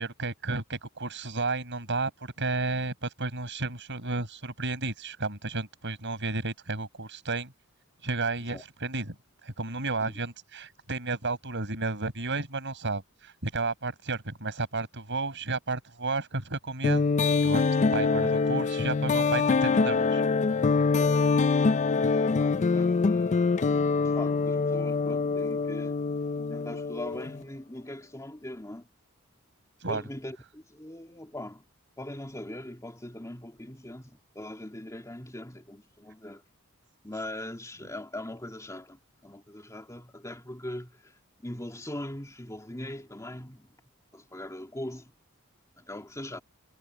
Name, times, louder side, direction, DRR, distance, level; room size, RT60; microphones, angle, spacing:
voice 1, 0.0-7.5 8.0-9.2 9.4-17.1 17.4-20.2 29.8-30.0, right 3 dB, 60° right, 7.5 m, -32 dB
sound 1, 16.8-27.4, left 4 dB, 35° left, 0.4 m, -25 dB
voice 2, 22.2-26.0 26.5-28.9 29.9-31.6 32.0-36.4 37.0-41.1 41.4-43.7 44.1-45.1 45.8-46.4, left 1 dB, 15° left, 2.5 m, -41 dB
head